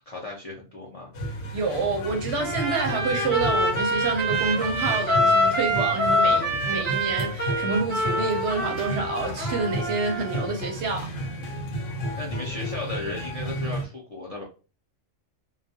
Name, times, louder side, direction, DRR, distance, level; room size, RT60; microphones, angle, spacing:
voice 1, 0.1-1.1 1.8-1.9 12.2-14.4, left 2 dB, 55° left, 0.4 m, -35 dB
sound 1, 1.1-13.9, equal, 70° left, 1.0 m, -33 dB
voice 2, 1.5-11.1, right 4 dB, 60° right, 0.8 m, -28 dB
Trumpet, 2.4-10.5, equal, 10° left, 0.9 m, -25 dB
2.3 x 2.2 x 2.6 m
omnidirectional pair, 1.4 m